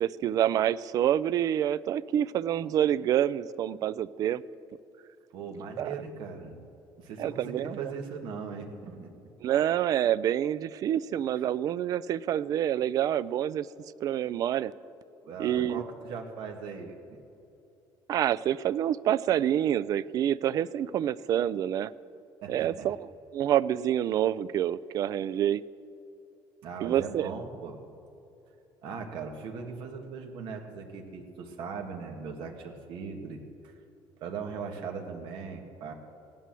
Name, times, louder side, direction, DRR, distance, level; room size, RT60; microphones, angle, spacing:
voice 1, 0.0-4.4 5.8-5.9 7.2-7.9 9.4-13.7 14.0-14.7 15.4-15.8 18.1-21.9 22.5-23.0 23.3-25.6 26.8-27.3, right 11 dB, 40° right, 18 dB, 0.3 m, -27 dB
voice 2, 5.3-6.6 7.0-9.1 15.2-17.0 22.4-22.9 26.6-27.8 28.8-33.7 34.2-35.9, right 5 dB, 60° right, 3 dB, 1.8 m, -39 dB
17.0 x 11.0 x 7.6 m, 2.8 s
cardioid pair, 175°, 9 cm